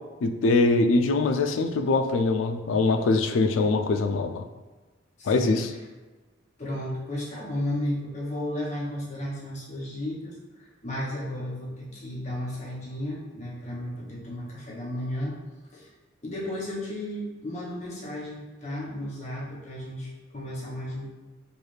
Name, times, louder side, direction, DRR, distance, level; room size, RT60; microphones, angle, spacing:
voice 1, 0.2-4.4 5.3-5.7, left 3 dB, 80° left, 7 dB, 0.4 m, -23 dB
voice 2, 5.2-5.6 6.6-15.4 15.7-15.9 16.2-21.1, left 1 dB, 35° left, -5 dB, 0.9 m, -34 dB
4.7 x 2.3 x 3.2 m, 1.2 s
head